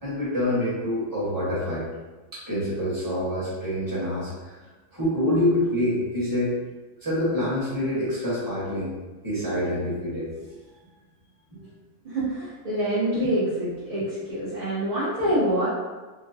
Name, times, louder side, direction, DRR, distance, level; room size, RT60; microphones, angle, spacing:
voice 1, 0.0-1.9 2.3-6.5 7.0-8.9 9.2-10.3 11.5-11.6 13.9-14.1 15.2-15.4, left 1 dB, 15° right, -10 dB, 1.0 m, -26 dB
voice 2, 12.0-14.0 14.3-15.7, right 1 dB, 40° right, -13 dB, 0.5 m, -25 dB
3.3 x 2.2 x 2.7 m, 1.2 s
omnidirectional pair, 1.7 m